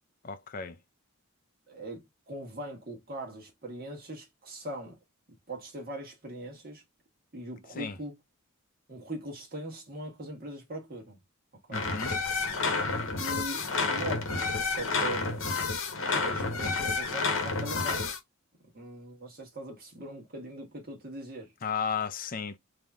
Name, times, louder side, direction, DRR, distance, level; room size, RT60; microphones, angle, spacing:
voice 1, 0.2-0.8 7.8-8.0 11.7-12.2 21.6-22.6, left 6 dB, 40° left, 0.5 m, -34 dB
voice 2, 1.7-5.0 5.5-6.8 7.3-8.2 8.9-11.2 11.7-11.9 13.2-13.6 13.9-15.6 16.2-18.1 18.7-21.5, right 1 dB, 40° right, 1.5 m, -41 dB
sound 1, 11.7-18.2, left 4 dB, 65° left, 0.9 m, -30 dB
3.6 x 2.8 x 3.5 m
head